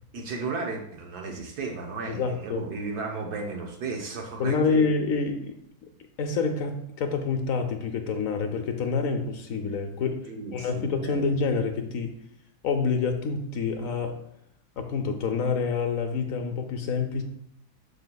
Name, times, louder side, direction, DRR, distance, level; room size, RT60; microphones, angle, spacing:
voice 1, 0.1-4.8 10.3-11.2, right 4 dB, 75° right, 2 dB, 1.5 m, -34 dB
voice 2, 2.1-2.6 4.4-5.5 6.2-10.2 10.5-12.2 12.6-14.2 14.8-17.2, left 5 dB, 65° left, 6 dB, 1.0 m, -27 dB
12.0 x 4.2 x 2.3 m, 0.73 s
omnidirectional pair, 1.7 m